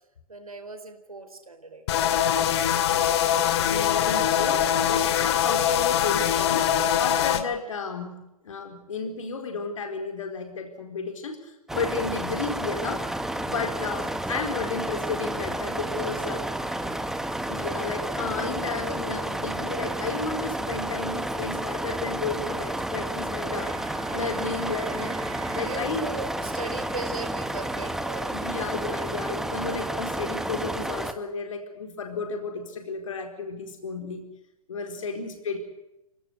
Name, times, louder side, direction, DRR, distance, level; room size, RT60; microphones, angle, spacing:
voice 1, 0.3-2.0 2.6-2.8 3.7-3.8 5.3-5.5 15.9-16.2 16.8-16.9 25.6-28.5 35.0-35.1, right 3 dB, 85° right, 6 dB, 4.3 m, -39 dB
sound 1, 1.9-7.4, left 10 dB, 50° left, 2.4 m, -23 dB
voice 2, 3.4-6.7 7.0-8.2 8.4-13.0 13.4-16.4 17.5-25.2 25.5-26.1 28.3-34.2 34.7-35.6, left 4 dB, 65° left, 4 dB, 4.5 m, -33 dB
sound 2, 11.7-31.1, right 1 dB, ahead, 1.7 m, -31 dB
Bowed string instrument, 23.5-26.6, right 6 dB, 30° right, 3.4 m, -42 dB
28.5 x 17.5 x 8.0 m, 0.93 s
figure-of-eight pair, 110°, 18 cm